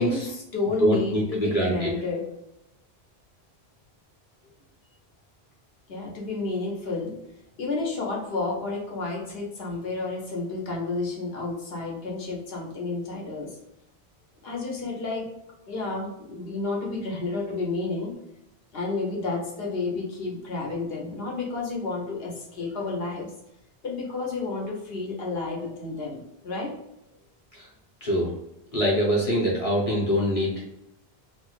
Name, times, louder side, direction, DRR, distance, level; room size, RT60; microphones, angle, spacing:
voice 1, 0.0-2.3 5.9-7.1 7.6-13.6 14.4-15.3 15.7-18.2 18.7-23.3 23.8-26.7, left 3 dB, 70° left, -2 dB, 1.1 m, -31 dB
voice 2, 0.8-1.9 27.5-27.7 28.0-28.3 28.7-30.8, equal, 35° left, -6 dB, 1.0 m, -24 dB
3.0 x 2.1 x 3.0 m, 0.85 s
omnidirectional pair, 1.1 m